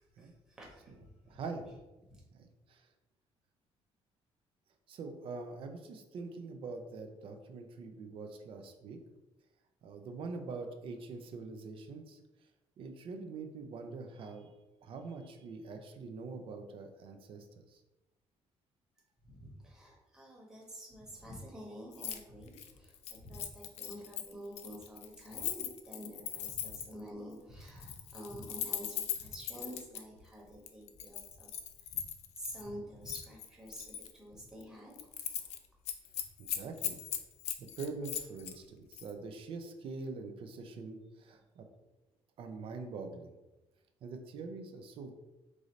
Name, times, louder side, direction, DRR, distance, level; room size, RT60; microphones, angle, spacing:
voice 1, 0.2-1.1 2.1-2.2 19.2-31.5 31.9-32.0 32.4-35.0 35.2-35.5, equal, 5° right, -4 dB, 1.1 m, -48 dB
voice 2, 1.3-1.6 2.3-2.9 4.9-9.0 9.8-12.2 12.8-14.5 14.8-17.8 36.4-37.0 37.6-41.6 42.4-43.3 44.0-45.1, right 4 dB, 55° right, 6 dB, 0.6 m, -44 dB
Keys jangling, 21.9-22.2 22.5-27.0 27.7-30.0 30.7-32.6 33.1-34.1 34.5-34.6 34.9-35.6 35.8-38.5 38.9-39.1, left 10 dB, 75° left, 0.5 m, -39 dB
4.8 x 2.6 x 4.0 m, 1.0 s
cardioid pair, 165°, 11 cm